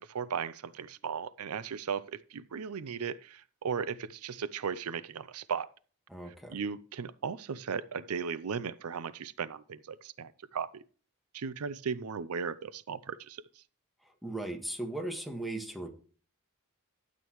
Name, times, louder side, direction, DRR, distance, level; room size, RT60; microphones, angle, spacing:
voice 1, 0.0-5.7 6.5-10.8 11.3-13.6, right 6 dB, 85° right, 0.5 m, -36 dB
voice 2, 6.1-6.5 14.2-15.9, right 2 dB, ahead, 1.6 m, -37 dB
12.5 x 8.3 x 3.1 m
head